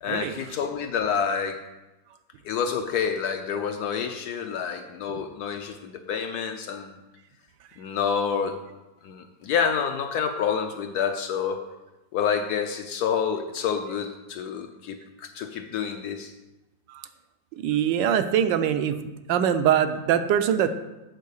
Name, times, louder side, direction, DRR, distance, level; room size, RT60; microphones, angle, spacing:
voice 1, 0.0-1.6 2.4-7.0 7.8-8.6 9.0-11.6 12.1-16.3, left 7 dB, 70° left, 6 dB, 1.0 m, -28 dB
voice 2, 17.6-19.0 19.3-20.7, right 9 dB, 80° right, 10 dB, 1.2 m, -23 dB
8.2 x 4.6 x 6.4 m, 1.1 s
omnidirectional pair, 2.0 m